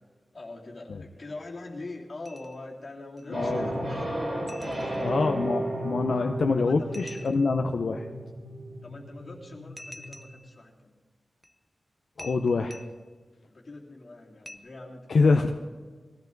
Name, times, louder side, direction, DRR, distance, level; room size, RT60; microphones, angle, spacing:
voice 1, 0.3-4.2 4.6-5.1 6.6-7.0 8.8-10.9 13.4-15.5, left 2 dB, 45° left, -3 dB, 3.1 m, -43 dB
sound 1, 2.3-2.7 3.2-3.3 4.5-5.3 6.9-7.7 9.8-10.6 11.4-11.6 12.2-13.1 14.5-14.6, left 1 dB, 5° right, 1.1 m, -47 dB
voice 2, 3.3-3.7 5.0-8.1 12.2-12.8 15.1-15.5, left 4 dB, 70° left, 4 dB, 0.7 m, -25 dB
sound 2, 3.3-10.3, right 1 dB, 35° right, 5.2 m, -34 dB
22.0 x 16.0 x 4.0 m, 1.4 s
wide cardioid pair, 130°, 0 cm